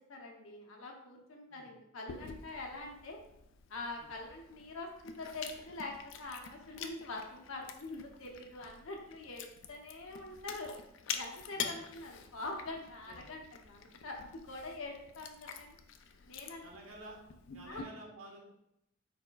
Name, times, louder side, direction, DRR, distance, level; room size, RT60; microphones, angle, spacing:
voice 1, 0.1-3.2 3.7-5.9 6.2-10.7 11.1-15.8 16.3-16.7 17.7-17.8, left 2 dB, 80° left, 1 dB, 0.8 m, -44 dB
Chewing mastication, 2.1-17.8, left 7 dB, 60° left, 0.4 m, -47 dB
voice 2, 16.6-17.2 17.4-18.5, right 1 dB, 85° right, 0 dB, 1.1 m, -51 dB
4.3 x 4.3 x 2.3 m, 0.80 s
head